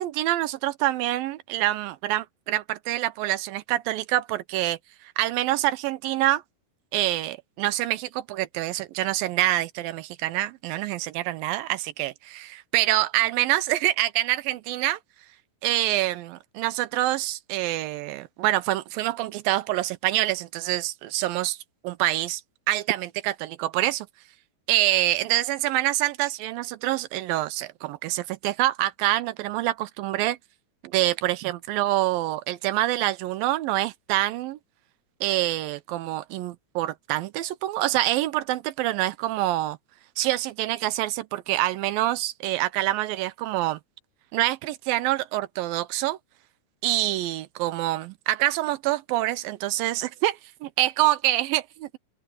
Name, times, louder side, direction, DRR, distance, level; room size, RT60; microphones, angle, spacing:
voice 1, 0.0-4.8 5.2-6.4 6.9-15.0 15.6-21.6 21.8-22.4 22.7-24.1 24.7-30.4 30.8-34.6 35.2-39.8 40.2-43.8 44.3-46.2 46.8-52.0, right 15 dB, 80° right, 2.2 m, -26 dB
open air
omnidirectional pair, 4.6 m